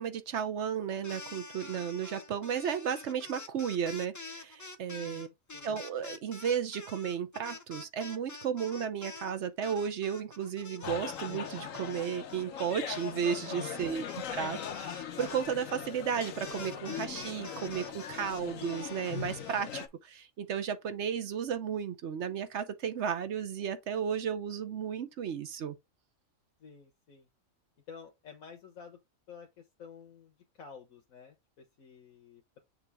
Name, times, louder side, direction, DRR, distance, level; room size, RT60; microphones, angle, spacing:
voice 1, 0.0-5.3 5.6-14.0 14.3-25.8, right 7 dB, 60° right, 0.9 m, -34 dB
sound 1, 0.9-9.3 9.6-19.7, left 3 dB, 20° left, 0.4 m, -47 dB
voice 2, 4.9-5.7 13.7-14.5 26.6-27.3 27.9-29.0 29.3-32.6, left 6 dB, 90° left, 1.5 m, -51 dB
sound 2, 10.8-19.9, left 8 dB, 75° left, 1.2 m, -40 dB
6.8 x 2.9 x 4.7 m
omnidirectional pair, 1.4 m